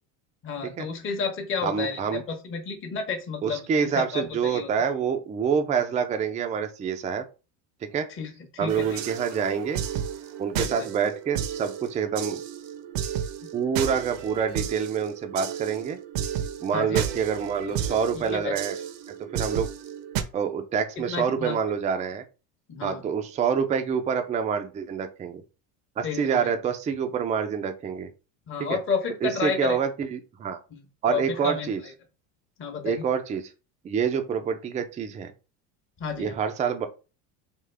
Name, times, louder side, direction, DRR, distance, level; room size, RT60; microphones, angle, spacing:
voice 1, 0.4-4.7 8.1-9.0 10.5-10.9 16.7-17.0 18.2-18.5 21.0-21.6 22.7-23.0 26.0-26.5 28.5-29.8 30.7-31.7 32.6-33.1 36.0-36.4, left 5 dB, 30° left, 3 dB, 0.9 m, -31 dB
voice 2, 1.6-2.2 3.4-7.2 7.9-8.1 8.6-9.8 10.4-12.4 13.5-16.0 16.6-18.8 19.3-19.7 20.3-22.2 22.8-25.4 26.0-28.1 28.6-28.8 29.2-30.6 31.0-31.8 32.8-33.5 33.8-35.3 36.2-36.9, right 7 dB, 20° right, 7 dB, 0.4 m, -27 dB
sound 1, 8.7-20.2, right 9 dB, 60° right, 0.7 m, -33 dB
3.6 x 2.4 x 3.3 m, 0.32 s
supercardioid pair, 115°, 39 cm